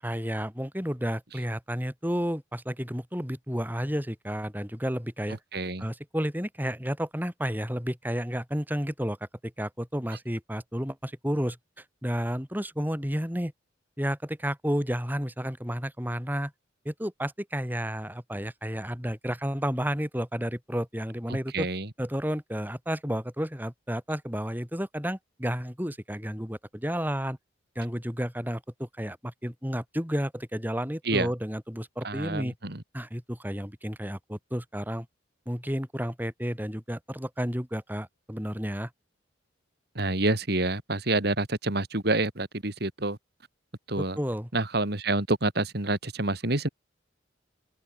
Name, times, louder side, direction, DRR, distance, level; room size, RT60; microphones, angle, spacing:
voice 1, 0.0-5.4 5.8-9.2 9.4-11.6 12.0-13.5 14.0-16.5 16.8-21.7 22.0-27.4 27.8-32.5 32.9-35.1 35.5-38.9 44.0-44.5, equal, 10° right, 6.1 m, -31 dB
voice 2, 5.5-5.8 21.3-21.9 31.0-31.3 32.0-32.8 39.9-43.2 43.9-44.2 44.5-46.7, right 2 dB, 55° right, 2.8 m, -28 dB
head